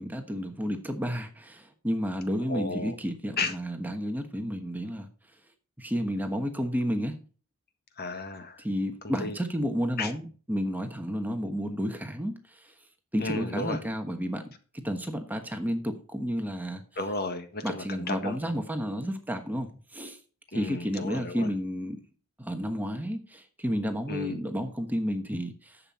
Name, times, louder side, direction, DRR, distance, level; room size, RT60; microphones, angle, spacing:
voice 1, 0.0-5.1 5.8-7.1 8.6-12.4 13.1-14.5 14.8-16.8 17.6-20.2 20.5-22.0 22.4-25.8, equal, 10° right, 5 dB, 1.2 m, -31 dB
voice 2, 2.5-2.9 3.4-3.5 8.0-8.6 9.0-9.4 10.0-10.1 13.2-13.9 17.0-18.5 20.5-21.5 24.1-24.4, left 3 dB, 45° left, 7 dB, 1.6 m, -33 dB
11.0 x 7.8 x 4.2 m, 0.39 s
head